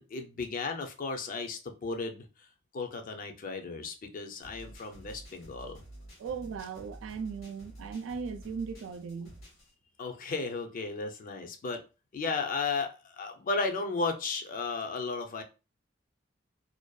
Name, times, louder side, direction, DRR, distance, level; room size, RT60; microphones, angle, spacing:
voice 1, 0.0-2.2 2.7-5.8 10.0-11.8 12.1-15.4, left 4 dB, 45° left, 0.4 m, -34 dB
sound 1, 4.4-9.7, right 1 dB, 85° left, 1.0 m, -50 dB
voice 2, 6.2-9.4, right 5 dB, 75° right, 0.3 m, -38 dB
2.5 x 2.2 x 2.2 m
head